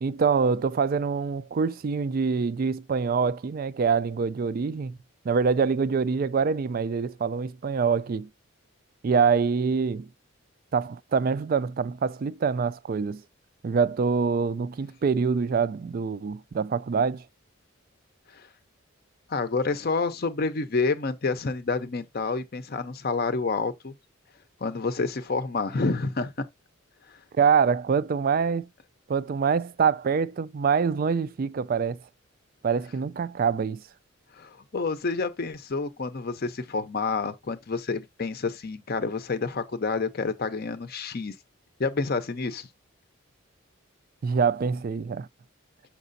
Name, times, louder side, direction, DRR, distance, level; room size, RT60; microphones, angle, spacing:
voice 1, 0.0-5.0 5.2-8.3 9.0-10.1 10.7-13.2 13.6-17.2 27.4-28.7 29.1-32.0 32.6-33.8 44.2-45.3, right 5 dB, 45° right, 0.3 m, -25 dB
voice 2, 19.3-23.9 24.6-26.3 34.3-41.4 41.8-42.7, left 4 dB, 45° left, 0.6 m, -28 dB
6.5 x 5.9 x 2.6 m
head